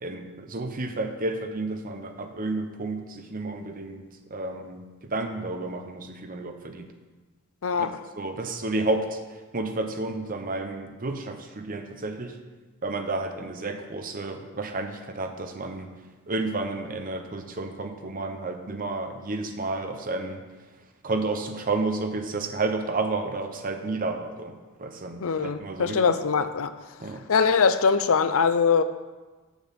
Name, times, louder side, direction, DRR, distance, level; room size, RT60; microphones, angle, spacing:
voice 1, 0.0-4.0 4.3-6.9 8.2-9.2 9.5-12.4 12.8-15.9 16.3-20.4 21.0-24.5 24.8-26.0 27.0-27.2, right 2 dB, 40° right, 6 dB, 0.8 m, -31 dB
voice 2, 25.2-26.7 27.3-28.8, left 5 dB, 65° left, 11 dB, 0.5 m, -22 dB
7.1 x 6.1 x 7.4 m, 1.3 s
head